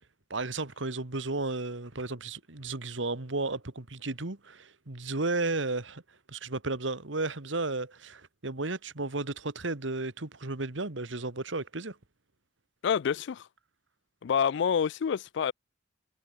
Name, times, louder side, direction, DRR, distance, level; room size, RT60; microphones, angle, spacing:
voice 1, 0.3-6.0 6.3-12.0, right 3 dB, 80° right, 1.9 m, -33 dB
voice 2, 12.8-13.5 14.2-15.5, left 7 dB, 70° left, 0.4 m, -27 dB
head